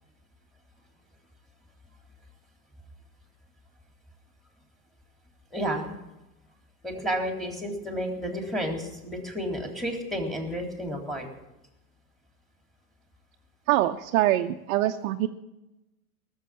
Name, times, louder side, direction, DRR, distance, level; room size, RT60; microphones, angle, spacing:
voice 1, 5.5-6.0 6.8-11.3, equal, ahead, 3 dB, 3.7 m, -31 dB
voice 2, 13.7-15.3, right 14 dB, 55° right, 3 dB, 1.0 m, -24 dB
18.0 x 7.5 x 9.0 m, 0.95 s
hypercardioid pair, 95°, 44 cm